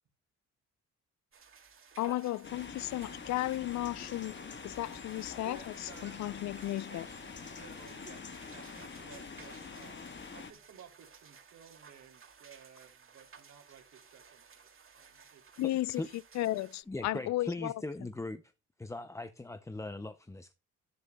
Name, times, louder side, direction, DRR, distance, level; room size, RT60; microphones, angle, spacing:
sound 1, 1.3-16.8, right 6 dB, 45° right, 2.5 m, -58 dB
voice 1, 2.0-7.1 15.6-16.0 16.4-17.7, left 15 dB, 65° left, 0.5 m, -34 dB
sound 2, 2.4-10.5, left 5 dB, 40° left, 1.3 m, -46 dB
voice 2, 5.4-6.2 6.9-10.0 10.3-14.7 15.0-15.6, right 7 dB, 65° right, 2.8 m, -56 dB
voice 3, 7.1-7.5 10.0-10.2 15.6-16.1 16.9-18.5 18.8-20.5, left 2 dB, 10° left, 0.5 m, -41 dB
11.0 x 10.5 x 2.2 m
cardioid pair, 90°, 30 cm